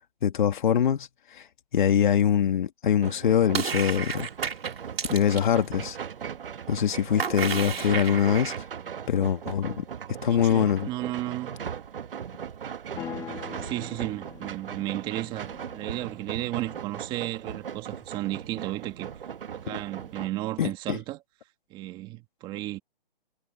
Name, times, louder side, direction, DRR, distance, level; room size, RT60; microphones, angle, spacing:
voice 1, 0.2-1.1 1.7-4.3 5.1-6.0 6.7-8.5 9.1-9.8 10.2-10.9 19.7-19.8 20.6-21.0, left 9 dB, 55° left, 2.2 m, -23 dB
sound 1, 3.0-20.3, right 8 dB, 70° right, 1.8 m, -38 dB
sound 2, 3.5-5.5 7.2-8.6, right 6 dB, 85° right, 4.9 m, -31 dB
voice 2, 10.3-11.5 13.2-19.1 19.5-21.2 21.7-22.8, right 16 dB, 15° right, 1.9 m, -34 dB
sound 3, 13.0-17.1, left 10 dB, 10° left, 1.9 m, -44 dB
hypercardioid pair, 165°, 29 cm